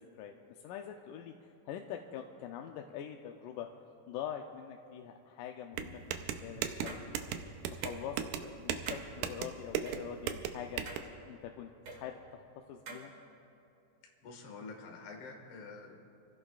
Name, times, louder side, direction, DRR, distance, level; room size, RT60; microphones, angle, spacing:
voice 1, 0.0-3.7 4.1-7.0 7.7-10.8 11.3-13.1, left 9 dB, 90° left, 3 dB, 2.2 m, -44 dB
sound 1, 5.7-11.0, right 9 dB, 85° right, 2.3 m, -37 dB
sound 2, 6.9-7.0 7.7-8.0 8.9-9.0 9.9-10.0 10.9-11.1 11.9-12.0 12.9-13.0, right 3 dB, 45° right, 2.5 m, -45 dB
voice 2, 14.2-16.0, left 4 dB, 45° left, 0 dB, 2.3 m, -47 dB
27.5 x 16.0 x 2.4 m, 2.7 s
omnidirectional pair, 3.7 m